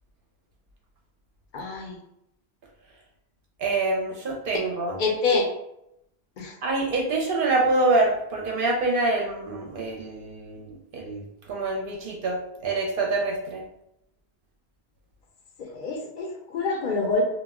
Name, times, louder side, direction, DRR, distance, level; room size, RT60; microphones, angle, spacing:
voice 1, 1.5-2.0 5.0-5.5 6.4-6.5 15.6-17.2, left 3 dB, 60° left, 1 dB, 0.6 m, -26 dB
voice 2, 3.6-5.0 6.6-11.2 11.5-12.4 12.6-13.6, right 2 dB, 65° right, 0 dB, 0.7 m, -25 dB
2.2 x 2.1 x 3.5 m, 0.81 s
omnidirectional pair, 1.0 m